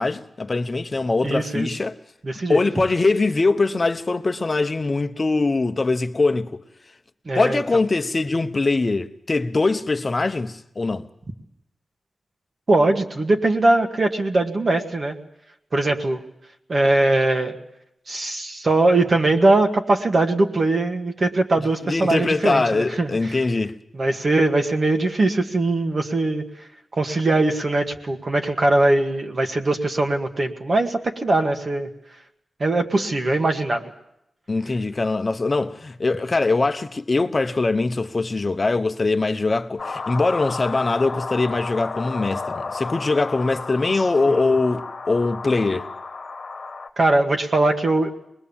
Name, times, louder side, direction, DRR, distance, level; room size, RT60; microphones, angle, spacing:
voice 1, 0.0-2.0 2.5-6.6 7.3-11.1 21.8-23.8 34.5-45.9, left 3 dB, 30° left, 1.0 m, -22 dB
voice 2, 1.2-1.7 2.2-2.6 7.3-7.6 12.7-15.2 15.7-16.2 16.7-17.6 18.1-23.1 23.9-26.4 26.9-31.9 32.6-33.9 44.3-44.5 47.0-48.1, right 2 dB, 40° right, 1.7 m, -21 dB
sound 1, 39.8-46.9, left 4 dB, 45° left, 1.5 m, -33 dB
25.0 x 21.0 x 7.2 m
wide cardioid pair, 175°, 0 cm